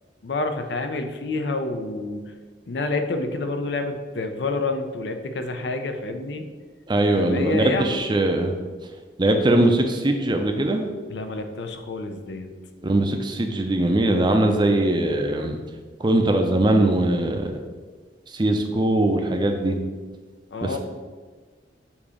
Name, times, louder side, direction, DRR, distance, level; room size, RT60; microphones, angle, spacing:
voice 1, 0.2-2.2 2.7-6.4 7.2-8.0 11.1-12.5 20.5-20.8, left 2 dB, 70° left, 6 dB, 0.6 m, -28 dB
voice 2, 6.9-8.5 9.2-10.9 12.8-15.6 16.0-17.6 18.3-19.8, right 1 dB, 25° right, 4 dB, 0.5 m, -21 dB
7.1 x 2.9 x 4.9 m, 1.4 s
head